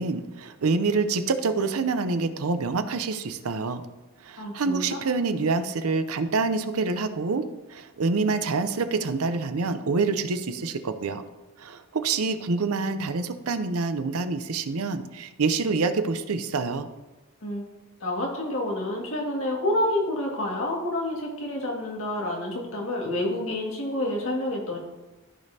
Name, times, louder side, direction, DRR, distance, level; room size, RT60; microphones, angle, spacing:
voice 1, 0.0-3.8 4.2-11.2 11.6-16.9, right 4 dB, 85° right, 10 dB, 0.6 m, -26 dB
voice 2, 4.4-5.0 17.4-17.7 18.0-24.8, left 1 dB, 70° left, -1 dB, 1.9 m, -28 dB
14.0 x 5.2 x 2.8 m, 1.1 s
head